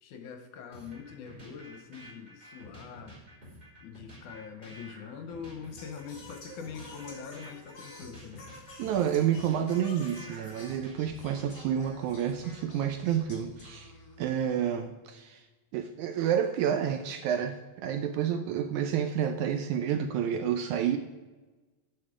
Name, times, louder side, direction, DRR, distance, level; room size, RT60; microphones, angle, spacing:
voice 1, 0.0-3.2 3.8-8.5, left 6 dB, 70° left, 6 dB, 2.2 m, -43 dB
sound 1, 0.7-11.5, equal, 15° right, 3.4 m, -50 dB
Singing, 5.7-14.4, left 2 dB, 35° left, 2.6 m, -49 dB
voice 2, 8.8-13.9 14.2-15.4 15.7-21.0, right 9 dB, 80° right, 7 dB, 1.8 m, -29 dB
12.0 x 6.5 x 5.0 m, 1.2 s
omnidirectional pair, 3.8 m